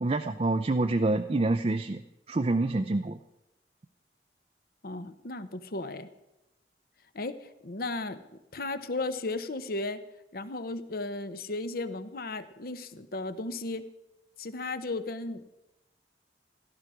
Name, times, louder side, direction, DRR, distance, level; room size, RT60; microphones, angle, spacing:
voice 1, 0.0-2.0 2.3-3.2, right 2 dB, 35° right, 7 dB, 0.5 m, -27 dB
voice 2, 4.8-6.1 7.1-8.2 8.5-10.0 10.3-13.8 14.4-15.6, left 2 dB, 55° left, 12 dB, 0.9 m, -35 dB
16.5 x 13.0 x 5.0 m, 0.94 s
head